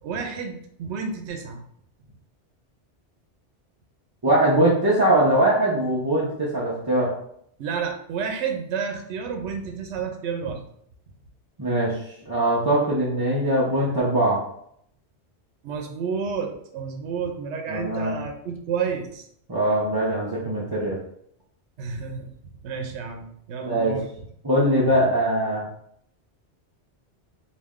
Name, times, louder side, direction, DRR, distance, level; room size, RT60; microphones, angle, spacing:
voice 1, 0.0-1.6 7.6-10.6 15.6-19.3 21.8-22.3 22.6-24.1, right 6 dB, 80° right, 3 dB, 0.9 m, -30 dB
voice 2, 4.2-7.1 11.6-12.0 12.3-14.4 17.7-18.1 19.5-20.9 23.6-24.0 24.4-25.6, right 1 dB, 25° right, -7 dB, 0.5 m, -21 dB
3.2 x 2.6 x 3.6 m, 0.69 s
omnidirectional pair, 1.2 m